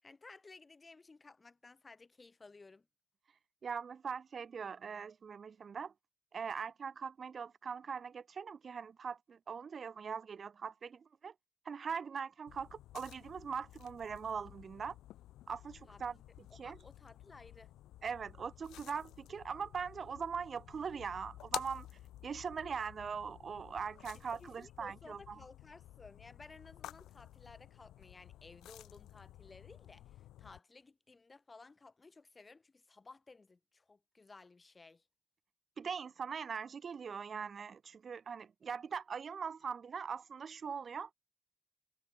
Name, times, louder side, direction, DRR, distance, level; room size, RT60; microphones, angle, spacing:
voice 1, 0.0-2.9 15.9-16.0 16.6-17.7 24.1-35.0, left 3 dB, 40° left, 5.0 m, -57 dB
voice 2, 3.6-5.9 6.3-11.3 11.7-15.0 15.5-16.2 16.6-16.8 18.0-21.9 22.2-25.4 35.8-41.1, right 6 dB, 60° right, 2.0 m, -41 dB
sound 1, 12.5-30.6, left 14 dB, 90° left, 0.6 m, -52 dB
supercardioid pair, 45°, 0 cm